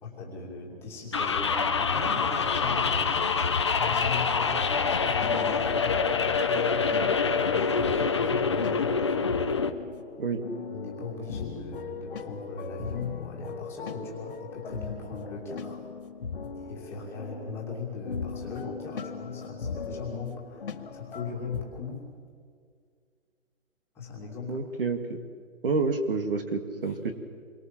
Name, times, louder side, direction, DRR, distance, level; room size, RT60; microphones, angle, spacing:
voice 1, 0.0-3.2 3.7-5.9 6.4-9.1 10.7-15.8 16.6-22.1 23.9-24.6 26.8-27.0, left 4 dB, 5° left, -3 dB, 2.6 m, -38 dB
sound 1, 1.1-9.7, left 5 dB, 20° left, 0.8 m, -26 dB
sound 2, 4.8-21.6, left 5 dB, 45° left, 2.0 m, -39 dB
voice 2, 24.5-25.0 25.6-27.1, right 4 dB, 45° right, 7 dB, 2.2 m, -28 dB
28.0 x 23.5 x 7.5 m, 2.1 s
hypercardioid pair, 170°, 39 cm